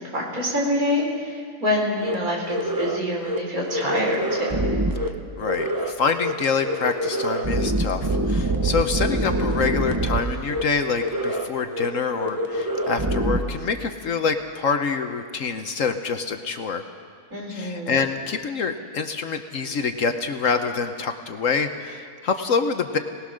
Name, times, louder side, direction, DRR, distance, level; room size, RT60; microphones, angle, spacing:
voice 1, 0.1-4.6 17.3-17.9, left 1 dB, 60° right, -2 dB, 4.6 m, -26 dB
sound 1, 2.0-2.1 2.5-3.0 3.2-3.4 3.7-5.1 5.4-5.9 6.2-6.3 6.6-10.2 10.5-10.6 10.9-11.5 11.7-11.9 12.1-13.4, right 1 dB, 15° right, 0.9 m, -25 dB
voice 2, 5.0-16.8 17.5-23.0, left 5 dB, 60° left, 7 dB, 1.2 m, -26 dB
22.5 x 18.5 x 6.3 m, 2.1 s
omnidirectional pair, 1.7 m